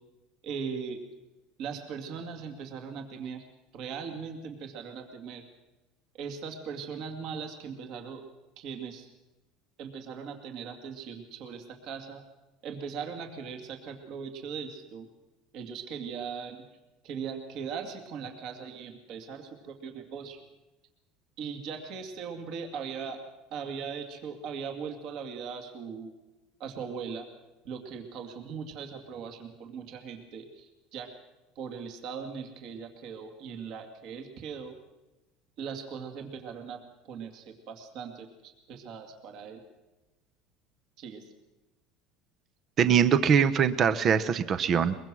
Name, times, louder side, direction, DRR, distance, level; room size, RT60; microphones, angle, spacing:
voice 1, 0.4-1.0 1.6-3.4 3.7-5.4 6.1-8.2 8.6-9.1 9.8-12.2 12.6-15.1 15.5-16.6 17.0-20.4 21.4-23.2 23.5-26.1 26.6-27.3 27.7-31.1 31.6-34.7 35.6-36.8 37.1-39.6 41.0-41.2, right 6 dB, 45° right, 5 dB, 2.3 m, -39 dB
voice 2, 42.8-45.0, right 7 dB, 30° right, 13 dB, 0.7 m, -22 dB
23.0 x 22.5 x 6.2 m, 1.1 s
cardioid pair, 170°, 0 cm